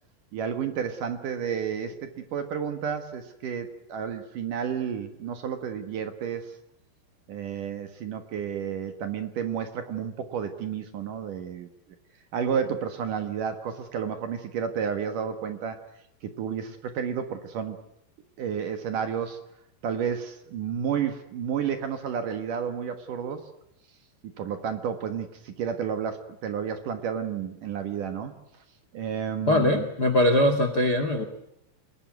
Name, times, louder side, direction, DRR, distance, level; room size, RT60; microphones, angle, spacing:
voice 1, 0.3-6.5 7.3-11.7 12.3-15.8 16.2-17.8 18.4-19.4 19.8-23.5 24.2-28.4 28.9-29.9, right 7 dB, 60° right, 7 dB, 2.5 m, -31 dB
voice 2, 29.5-31.2, left 1 dB, 80° left, 9 dB, 0.9 m, -22 dB
27.0 x 20.0 x 9.4 m, 0.79 s
omnidirectional pair, 5.2 m